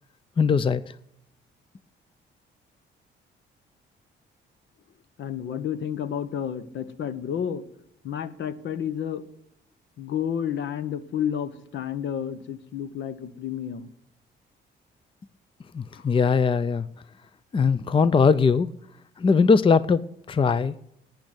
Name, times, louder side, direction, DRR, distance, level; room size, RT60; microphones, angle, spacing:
voice 1, 0.4-0.8 15.7-16.8 17.5-18.7 19.2-20.7, left 5 dB, 25° left, 16 dB, 0.5 m, -20 dB
voice 2, 5.2-7.6 8.0-9.2 10.0-13.9 15.9-16.1, left 9 dB, 70° left, 13 dB, 1.1 m, -31 dB
12.0 x 9.2 x 8.8 m, 0.77 s
cardioid pair, 90°, 20 cm